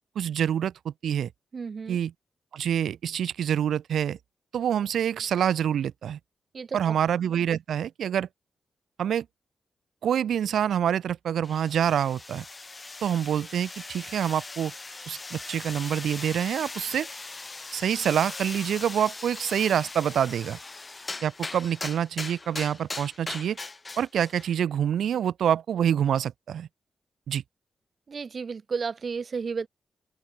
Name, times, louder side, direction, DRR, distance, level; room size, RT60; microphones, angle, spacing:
voice 1, 0.1-1.3 1.9-2.1 2.5-4.2 4.5-6.2 6.7-8.3 9.0-9.2 10.0-12.4 13.0-14.7 15.1-17.1 17.7-20.6 21.2-23.6 24.0-26.7 27.3-27.4, right 9 dB, 85° right, 1.7 m, -26 dB
voice 2, 1.5-2.0 6.5-7.0 28.1-29.7, right 5 dB, 45° right, 3.3 m, -33 dB
sound 1, 11.4-24.6, left 3 dB, 25° left, 3.2 m, -39 dB
open air
cardioid pair, 100°, 0 cm